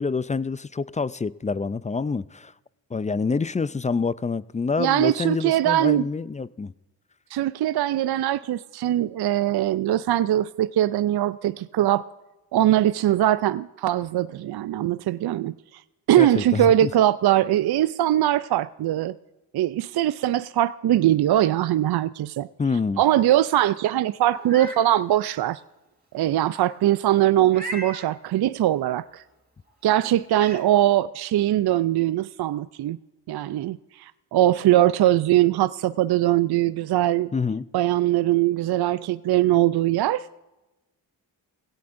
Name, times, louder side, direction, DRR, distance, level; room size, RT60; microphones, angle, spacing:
voice 1, 0.0-2.5 2.9-6.7 16.2-16.9 22.6-23.0 37.3-37.7, left 4 dB, 20° left, 0.3 m, -27 dB
voice 2, 4.8-6.1 7.3-12.1 12.5-15.5 16.1-19.1 19.5-22.5 23.0-25.6 26.1-29.2 29.8-33.0 33.3-37.3 37.7-40.3, right 13 dB, 60° right, 0.5 m, -21 dB
Meow, 24.3-24.8 25.3-25.4 27.5-28.1 29.7-29.8 30.3-30.6, right 1 dB, 20° right, 3.8 m, -36 dB
20.0 x 17.0 x 2.6 m
supercardioid pair, 45°, 45 cm